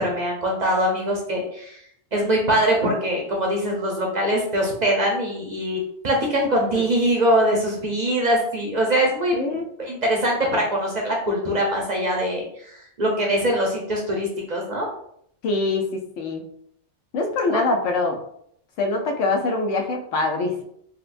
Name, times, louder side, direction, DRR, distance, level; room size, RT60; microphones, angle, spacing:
voice 1, 0.0-1.8 2.1-5.8 6.0-9.3 9.8-14.9 17.5-17.6, right 1 dB, 45° right, -1 dB, 0.6 m, -22 dB
voice 2, 9.3-9.7 15.4-16.4 17.1-18.2 18.8-20.6, left 3 dB, 90° left, 3 dB, 1.0 m, -24 dB
4.1 x 2.2 x 2.5 m, 0.68 s
omnidirectional pair, 1.2 m